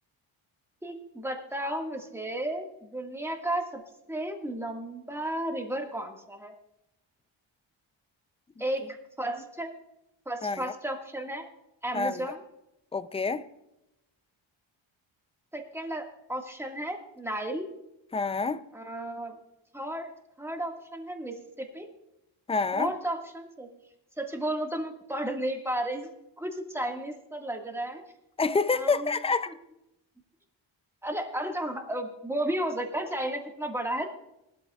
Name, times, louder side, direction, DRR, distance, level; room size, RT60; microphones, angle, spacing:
voice 1, 0.8-3.8 4.1-6.5 8.6-9.7 10.2-11.5 11.8-12.4 15.5-17.7 18.7-19.4 19.7-20.1 20.4-21.9 22.7-23.7 24.2-26.1 26.4-28.0 28.7-29.1 29.5-29.6 31.0-34.1, right 1 dB, 5° right, 1.7 m, -33 dB
voice 2, 10.4-10.7 11.9-12.2 12.9-13.4 18.1-18.6 22.5-22.9 28.4-29.5, left 4 dB, 15° left, 0.4 m, -27 dB
19.5 x 12.5 x 2.4 m
cardioid pair, 105°, 47 cm